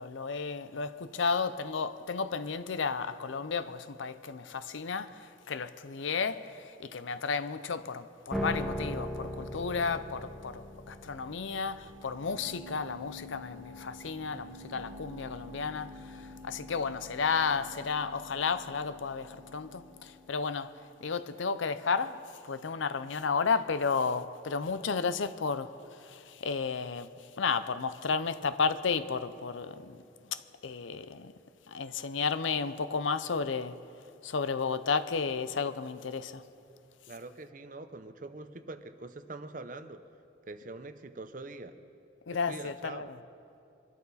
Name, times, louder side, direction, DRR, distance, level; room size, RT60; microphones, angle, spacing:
voice 1, 0.0-27.1 27.4-31.3 31.7-33.8 34.2-36.4 42.3-43.1, left 5 dB, 75° left, 0.6 m, -33 dB
sound 1, 8.3-20.6, left 1 dB, ahead, 0.8 m, -42 dB
voice 2, 37.1-40.0 40.5-41.8 42.5-43.1, right 2 dB, 40° right, 0.7 m, -44 dB
24.5 x 12.5 x 4.2 m
head